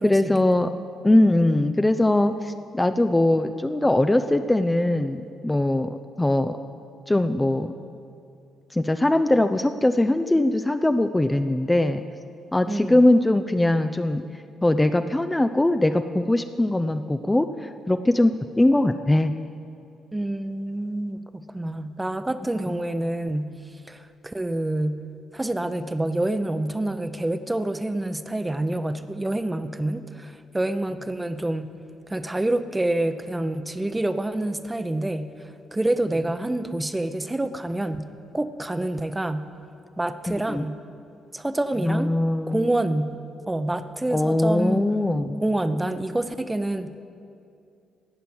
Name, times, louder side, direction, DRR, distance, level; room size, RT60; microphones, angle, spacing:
voice 1, 0.0-0.7 1.0-6.6 7.1-7.7 8.7-12.0 12.5-14.2 14.6-19.3 22.7-22.8 40.3-40.6 41.8-42.6 44.1-45.4, left 1 dB, 15° left, 8 dB, 0.6 m, -21 dB
voice 2, 12.7-13.0 20.1-23.5 23.9-25.0 25.3-31.7 32.1-39.5 40.0-40.8 41.3-42.1 42.5-43.2 43.5-44.8 45.4-47.0, right 1 dB, 15° right, 10 dB, 0.9 m, -27 dB
18.0 x 6.8 x 7.9 m, 2.5 s
figure-of-eight pair, 40°, 0 cm